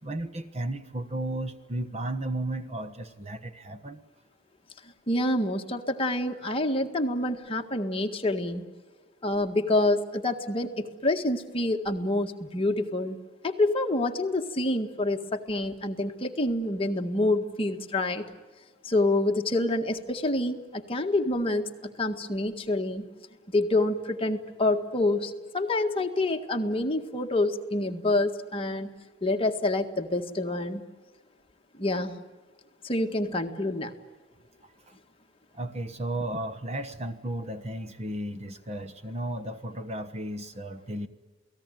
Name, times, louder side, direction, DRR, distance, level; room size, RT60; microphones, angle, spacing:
voice 1, 0.0-4.0 34.6-35.0 35.5-41.1, right 1 dB, 35° right, 10 dB, 1.3 m, -34 dB
voice 2, 5.1-8.6 9.2-13.2 13.4-18.2 18.8-23.0 23.5-28.9 29.2-30.8 31.8-32.2 32.8-33.9, left 2 dB, 30° left, 4 dB, 1.7 m, -27 dB
28.5 x 18.5 x 9.2 m, 1.3 s
head